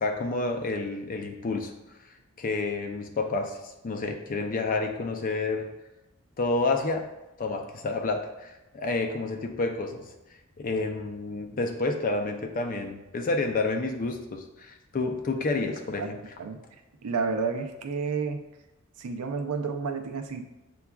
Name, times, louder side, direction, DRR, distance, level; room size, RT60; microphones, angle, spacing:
voice 1, 0.0-1.7 2.4-3.6 3.8-5.7 6.4-7.1 7.4-10.1 10.6-16.2, left 3 dB, 40° left, 4 dB, 0.4 m, -29 dB
voice 2, 17.0-18.4 19.0-20.5, right 5 dB, 80° right, 6 dB, 0.5 m, -30 dB
6.8 x 2.3 x 2.3 m, 1.0 s
head